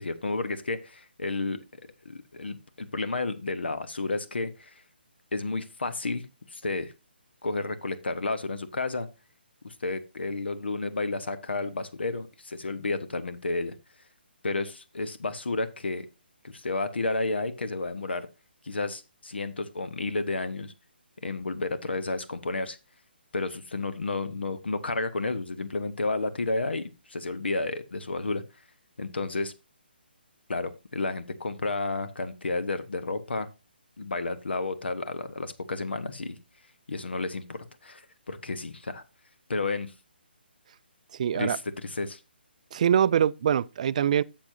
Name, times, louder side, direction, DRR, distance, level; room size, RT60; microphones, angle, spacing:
voice 1, 0.0-1.6 2.0-4.8 5.3-6.9 7.4-9.1 9.6-13.7 14.4-16.1 16.4-18.3 18.6-20.7 21.2-22.8 23.3-28.4 29.0-29.5 30.5-33.5 34.0-36.4 36.9-39.0 39.5-39.9 41.3-42.2, left 3 dB, 70° left, 1.0 m, -31 dB
voice 2, 41.2-41.6 42.7-44.2, right 9 dB, 40° right, 0.4 m, -23 dB
11.5 x 7.5 x 2.7 m
figure-of-eight pair, 145°, 6 cm